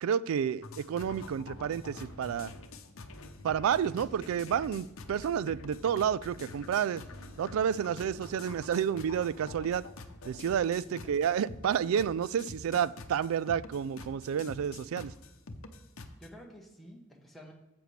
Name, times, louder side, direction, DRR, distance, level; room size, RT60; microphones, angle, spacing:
voice 1, 0.0-2.5 3.4-7.0 7.4-9.8 10.2-15.1, right 8 dB, 75° right, 20 dB, 0.3 m, -30 dB
sound 1, 0.6-16.3, left 3 dB, 70° left, 0.8 m, -47 dB
sound 2, 1.9-2.1 3.7-4.7 6.5-8.5, equal, 55° right, 3.6 m, -56 dB
voice 2, 3.8-4.2 10.9-11.1 16.2-17.5, equal, ahead, -1 dB, 1.0 m, -51 dB
13.0 x 7.8 x 3.3 m, 0.95 s
head